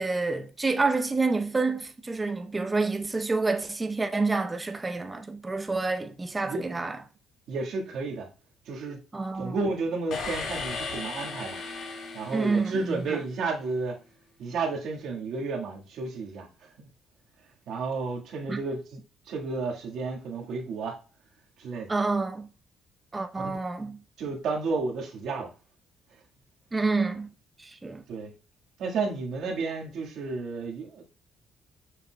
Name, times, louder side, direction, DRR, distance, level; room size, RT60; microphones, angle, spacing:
voice 1, 0.0-7.0 9.1-9.5 12.3-13.2 18.5-18.6 21.9-22.5 23.1-24.0 26.7-27.3 27.6-28.0, right 3 dB, 20° right, 0.7 m, -28 dB
voice 2, 7.5-8.3 8.6-9.0 9.3-11.6 12.1-14.0 14.4-16.9 17.7-19.0 19.3-21.0 21.6-21.9 23.3-23.6 24.2-25.5 28.1-28.3 28.8-31.0, right 4 dB, 70° right, 1.6 m, -32 dB
sound 1, 10.1-13.3, left 4 dB, 65° left, 2.0 m, -36 dB
6.7 x 6.2 x 2.2 m
cardioid pair, 120°, 0 cm